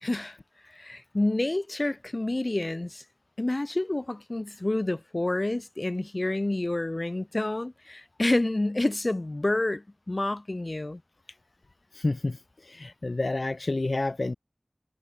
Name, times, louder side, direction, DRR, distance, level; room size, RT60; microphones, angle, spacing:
voice 1, 0.0-0.4 0.7-3.0 3.4-11.0, left 2 dB, 40° left, 2.0 m, -28 dB
voice 2, 11.9-14.4, left 2 dB, 60° left, 1.5 m, -29 dB
wide cardioid pair, 55°, 0 cm